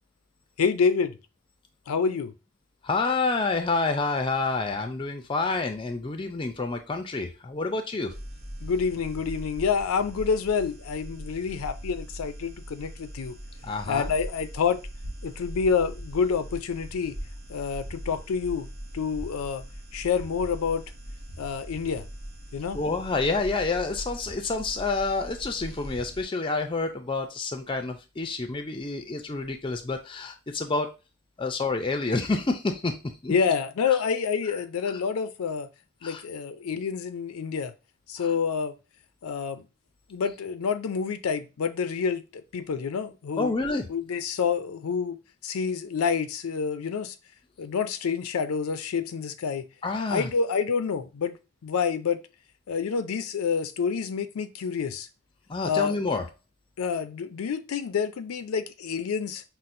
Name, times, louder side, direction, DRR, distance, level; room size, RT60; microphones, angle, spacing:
voice 1, 0.6-1.2 1.9-2.3 8.6-13.4 13.9-14.8 15.2-17.2 17.5-18.7 18.9-19.6 19.9-20.8 21.4-22.1 22.5-22.8 33.3-35.7 36.0-37.7 38.1-38.7 39.2-39.6 40.1-43.5 43.9-47.1 47.6-49.7 50.1-51.4 51.6-52.2 52.7-55.1 55.6-56.0 56.8-59.4, left 6 dB, 85° left, 0.4 m, -28 dB
voice 2, 2.8-8.1 13.6-14.1 22.7-30.9 31.4-33.3 33.9-34.0 36.0-36.2 38.2-38.3 43.4-43.9 49.8-50.3 55.5-56.2, left 3 dB, 25° left, 0.4 m, -28 dB
sound 1, 8.1-26.2, equal, 50° right, 0.8 m, -41 dB
5.7 x 2.0 x 2.5 m
head